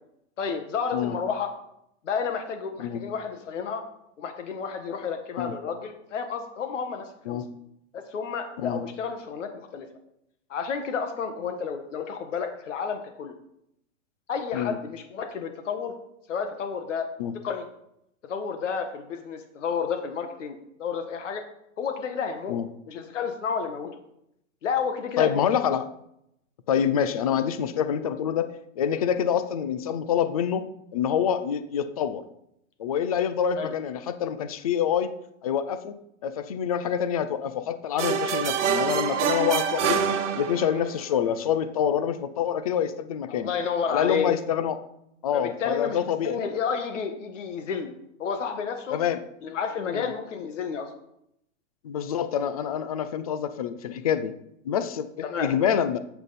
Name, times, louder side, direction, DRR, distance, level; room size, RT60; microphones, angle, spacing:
voice 1, 0.4-1.5 2.0-3.8 4.2-7.4 7.9-9.9 10.5-13.3 14.3-15.9 16.3-17.1 17.4-17.7 18.3-21.4 21.8-22.6 22.9-23.9 24.6-25.4 27.3-27.4 33.6-33.7 43.3-44.3 45.3-49.0 49.4-50.9 55.2-55.5, left 6 dB, 70° left, 6 dB, 1.7 m, -31 dB
voice 2, 25.2-25.9 26.7-28.5 28.8-32.2 32.8-35.1 35.4-35.9 36.2-40.0 40.3-43.5 43.9-44.8 45.2-46.4 48.9-49.2 49.9-50.1 51.8-54.3 54.6-56.0, left 8 dB, 30° left, 12 dB, 0.5 m, -26 dB
sound 1, 38.0-40.9, right 7 dB, 65° right, 1.4 m, -26 dB
12.0 x 8.0 x 4.2 m, 0.78 s
hypercardioid pair, 175°, 38 cm